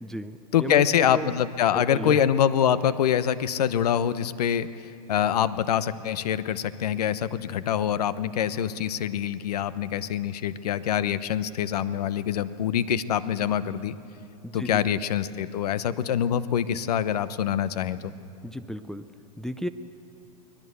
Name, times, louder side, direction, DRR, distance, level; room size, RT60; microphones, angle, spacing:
voice 1, 0.0-0.9 1.1-1.3 1.7-2.2 14.4-15.0 18.4-19.7, equal, ahead, 8 dB, 0.5 m, -34 dB
voice 2, 0.5-4.7 5.1-14.0 14.5-18.1, left 9 dB, 80° left, 14 dB, 0.9 m, -25 dB
24.0 x 18.0 x 8.1 m, 2.6 s
hypercardioid pair, 125°, 20 cm